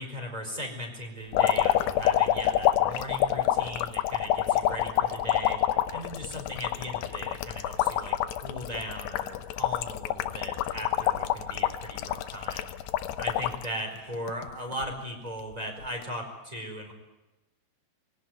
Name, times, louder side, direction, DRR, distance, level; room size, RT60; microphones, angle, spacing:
voice 1, 0.0-5.6 5.9-12.7 13.2-16.9, equal, 10° right, 4 dB, 4.3 m, -38 dB
sound 1, 1.3-13.7 14.1-14.9 15.9-16.0, left 12 dB, 75° left, 3.0 m, -27 dB
23.0 x 17.5 x 9.4 m, 1.1 s
omnidirectional pair, 5.1 m